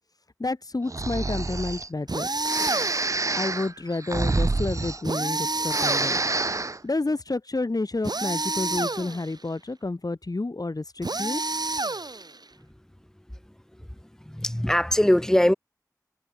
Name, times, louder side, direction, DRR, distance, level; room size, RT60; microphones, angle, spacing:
voice 1, 0.4-2.3 3.3-6.2 6.5-11.4, left 2 dB, 65° left, 0.9 m, -30 dB
Breathing, 0.9-1.9 2.4-5.4 5.6-6.8, right 3 dB, 50° right, 0.4 m, -27 dB
sound 1, 2.1-3.2 5.0-6.5 8.0-9.3 11.0-12.4, right 2 dB, 90° right, 1.7 m, -29 dB
voice 2, 14.3-15.5, left 1 dB, 5° left, 0.4 m, -21 dB
wide cardioid pair, 40°, 7 cm